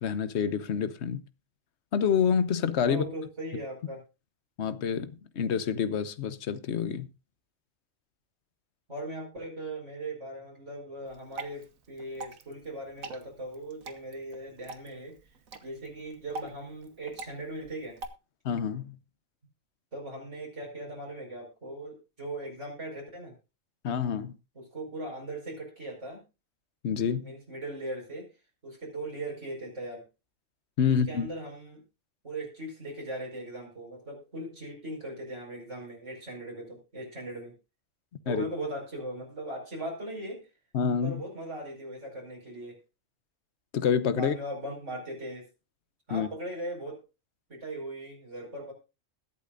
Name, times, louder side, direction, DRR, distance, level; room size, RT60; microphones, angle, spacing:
voice 1, 0.0-1.2 1.9-3.0 4.6-7.1 18.4-19.0 23.8-24.3 26.8-27.3 30.8-31.3 38.3-38.4 40.7-41.2 43.7-44.4 46.1-46.3, left 7 dB, 60° left, 1.1 m, -27 dB
voice 2, 2.8-4.0 8.9-15.2 15.6-18.0 19.9-23.3 24.5-26.2 27.2-28.3 28.6-30.0 30.8-31.8 32.2-37.5 38.2-40.5 41.0-42.8 44.1-45.5 46.1-47.0 47.5-48.7, right 1 dB, 60° right, 5.3 m, -39 dB
Water / Drip, 11.1-18.1, right 3 dB, 85° right, 1.7 m, -44 dB
21.5 x 8.5 x 2.5 m
omnidirectional pair, 1.4 m